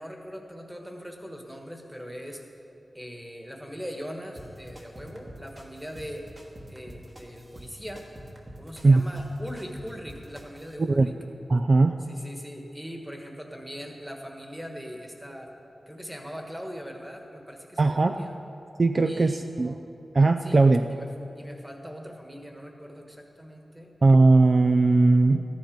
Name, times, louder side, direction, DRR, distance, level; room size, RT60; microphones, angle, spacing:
voice 1, 0.0-2.4 2.9-6.3 6.7-8.0 8.5-11.1 12.1-15.5 15.9-18.3 19.0-19.5 20.4-20.6 20.9-21.1 21.3-23.9, equal, 5° right, 2 dB, 1.4 m, -40 dB
sound 1, 4.4-10.7, equal, 30° right, 1.3 m, -46 dB
voice 2, 11.5-12.0 17.8-18.2 18.8-19.7 20.1-20.9 24.0-25.5, right 3 dB, 45° right, 6 dB, 0.4 m, -19 dB
14.0 x 10.5 x 5.1 m, 2.8 s
wide cardioid pair, 125°, 0 cm